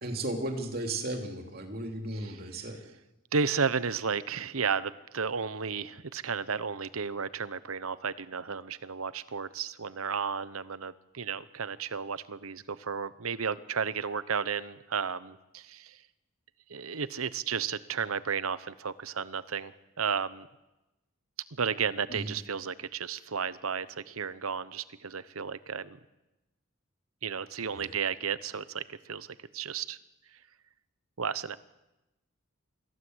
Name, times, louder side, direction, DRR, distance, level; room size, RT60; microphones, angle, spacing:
voice 1, 0.0-2.8 22.1-22.3 27.7-27.9, right 1 dB, 45° right, 3 dB, 3.0 m, -35 dB
voice 2, 3.3-16.0 16.7-20.5 21.5-26.0 27.2-30.0 31.2-31.6, right 6 dB, 85° right, 16 dB, 0.9 m, -33 dB
25.5 x 15.5 x 8.0 m, 1.0 s
head